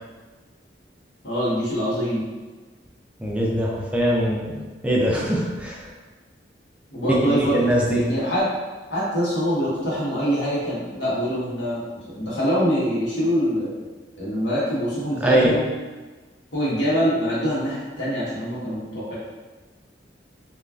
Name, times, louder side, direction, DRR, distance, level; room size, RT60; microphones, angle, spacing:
voice 1, 1.2-2.2 6.9-8.5 8.9-13.8 14.2-15.7 16.5-19.1, equal, 85° left, -8 dB, 1.1 m, -24 dB
voice 2, 3.2-5.8 7.2-8.0 15.2-15.5, right 1 dB, 5° right, -4 dB, 0.3 m, -22 dB
3.1 x 2.2 x 2.4 m, 1.3 s
head